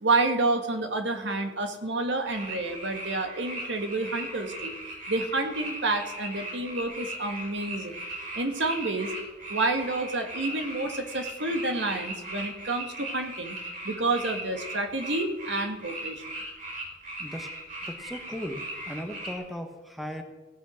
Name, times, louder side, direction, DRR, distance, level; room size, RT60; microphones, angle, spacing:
voice 1, 0.0-4.7 5.1-8.0 8.3-9.1 9.5-13.6 13.8-16.2, right 2 dB, 80° right, 6 dB, 1.6 m, -29 dB
sound 1, 2.3-19.3, right 1 dB, 45° right, 4.6 m, -38 dB
voice 2, 17.9-20.2, equal, ahead, 5 dB, 1.1 m, -37 dB
16.5 x 8.0 x 6.3 m, 1.2 s
head